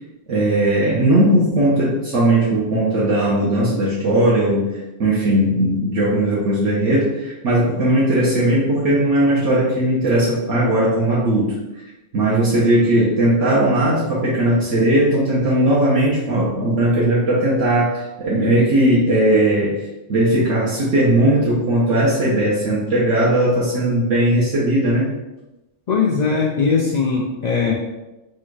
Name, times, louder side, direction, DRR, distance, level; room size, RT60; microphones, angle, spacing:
voice 1, 0.3-11.6 12.1-25.1, right 1 dB, 70° right, -7 dB, 1.2 m, -18 dB
voice 2, 25.9-27.7, left 5 dB, 75° left, -2 dB, 0.4 m, -19 dB
4.3 x 2.3 x 4.6 m, 1.0 s
omnidirectional pair, 1.3 m